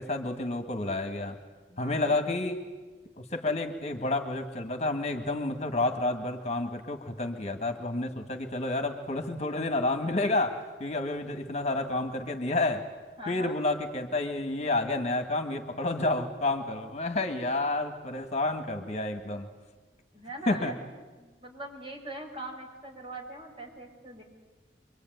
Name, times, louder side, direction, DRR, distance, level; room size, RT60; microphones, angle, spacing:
voice 1, 0.0-1.4 1.8-2.6 3.2-12.8 13.3-19.5 20.5-20.7, left 2 dB, 40° left, 6 dB, 1.8 m, -30 dB
voice 2, 1.7-2.2 13.2-13.6 20.1-20.8 21.2-24.2, right 1 dB, 30° right, 0 dB, 5.9 m, -41 dB
26.0 x 23.5 x 9.3 m, 1.2 s
head